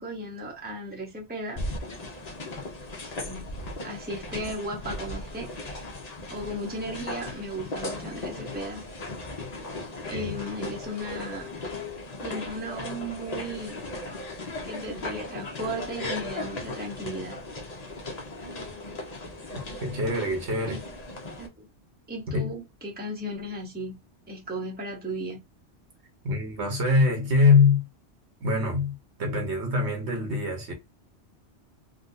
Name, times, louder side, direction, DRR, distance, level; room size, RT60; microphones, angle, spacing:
voice 1, 0.0-1.6 3.2-3.5 3.8-5.8 6.3-8.8 10.1-11.5 12.2-13.8 14.6-17.4 20.7-20.8 21.4-21.7 22.1-24.0 24.3-25.4, right 1 dB, 10° right, 0.9 m, -35 dB
sound 1, 1.6-21.5, left 2 dB, 40° left, 0.8 m, -37 dB
voice 2, 19.8-20.8 22.3-22.5 26.2-27.8 28.4-28.9 29.2-30.7, left 3 dB, 75° right, 1.3 m, -23 dB
3.6 x 2.4 x 2.6 m
omnidirectional pair, 1.2 m